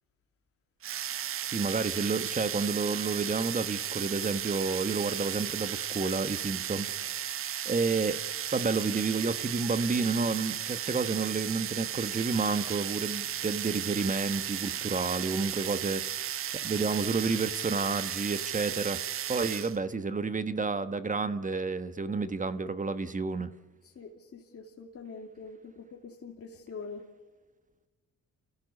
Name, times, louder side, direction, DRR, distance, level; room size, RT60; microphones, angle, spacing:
sound 1, 0.8-19.8, right 10 dB, 45° right, 0.6 m, -35 dB
voice 1, 1.4-7.2 7.6-8.2 8.5-16.2 16.5-19.0 19.3-23.5, right 4 dB, 25° right, 12 dB, 1.3 m, -30 dB
voice 2, 23.9-27.0, left 4 dB, 50° left, 0 dB, 2.9 m, -44 dB
29.5 x 15.0 x 8.3 m, 1.2 s
cardioid pair, 90°, 30 cm